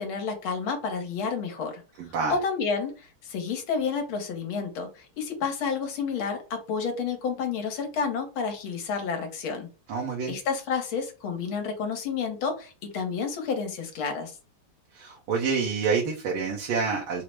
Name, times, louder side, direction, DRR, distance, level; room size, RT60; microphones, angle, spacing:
voice 1, 0.0-1.8 2.3-9.7 10.3-14.3, left 5 dB, 75° left, 4 dB, 1.7 m, -30 dB
voice 2, 2.0-2.4 9.9-10.3 14.9-17.2, right 5 dB, 75° right, -2 dB, 1.7 m, -27 dB
4.6 x 2.0 x 4.5 m, 0.33 s
omnidirectional pair, 2.4 m